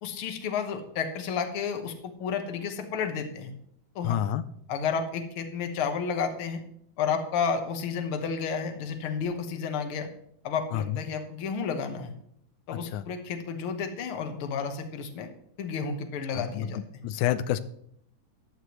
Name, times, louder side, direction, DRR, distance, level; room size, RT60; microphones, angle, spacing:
voice 1, 0.0-3.5 4.0-4.2 4.7-6.6 7.0-10.1 10.4-12.1 12.7-15.3 15.6-16.8, left 6 dB, 55° left, 6 dB, 1.9 m, -31 dB
voice 2, 4.0-4.4 10.7-11.0 12.7-13.1 16.3-17.6, left 11 dB, 90° left, 13 dB, 2.0 m, -29 dB
14.0 x 11.0 x 3.2 m, 0.68 s
omnidirectional pair, 3.3 m